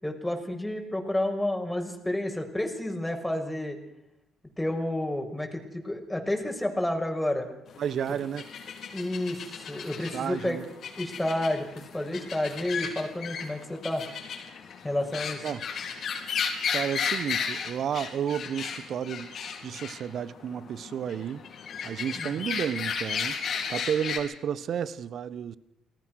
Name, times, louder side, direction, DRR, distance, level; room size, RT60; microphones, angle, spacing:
voice 1, 0.0-3.8 4.6-7.5 8.9-10.6 11.0-11.7 11.9-14.0 14.8-15.5 22.2-22.4, left 1 dB, 10° left, 6.5 m, -30 dB
sound 1, 7.7-24.2, left 6 dB, 55° left, 4.4 m, -35 dB
voice 2, 7.8-8.4 10.1-10.7 15.4-15.6 16.7-21.4 21.8-23.4 23.7-25.6, right 8 dB, 55° right, 1.1 m, -32 dB
28.5 x 18.5 x 6.5 m
hypercardioid pair, 50°, 0 cm